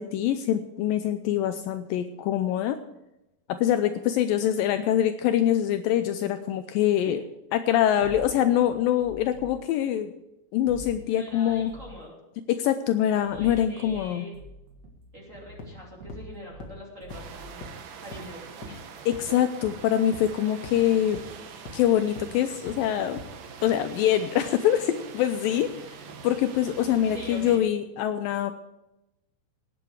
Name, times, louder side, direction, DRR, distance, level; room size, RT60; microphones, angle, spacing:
voice 1, 0.0-2.8 3.5-7.2 7.5-10.1 10.5-11.7 12.5-14.3 18.7-18.8 19.1-21.2 21.7-23.2 23.6-25.7 26.2-28.5, left 11 dB, 80° left, 9 dB, 2.2 m, -24 dB
sound 1, 8.0-9.5 10.7-12.0 13.2-14.0 14.3-16.7 17.0-17.7, right 1 dB, 90° right, 3.9 m, -46 dB
voice 2, 11.1-12.1 13.2-14.3 15.1-17.7 18.0-18.8 27.1-27.6, equal, 20° right, -2 dB, 2.8 m, -43 dB
sound 2, 15.6-15.7 16.1-16.2 16.6-16.7 17.1-17.2 17.6-17.7 18.1-18.2 18.6-18.7 19.1-19.2 19.6-19.7 20.1-20.2 20.6-20.7 21.1-21.2 21.6-21.7 22.2-22.3 22.7-22.8 23.2-23.3, left 2 dB, 40° left, 1.5 m, -40 dB
sound 3, 17.1-27.6, right 6 dB, 65° right, 2.5 m, -44 dB
17.5 x 8.7 x 4.8 m, 0.93 s
omnidirectional pair, 4.4 m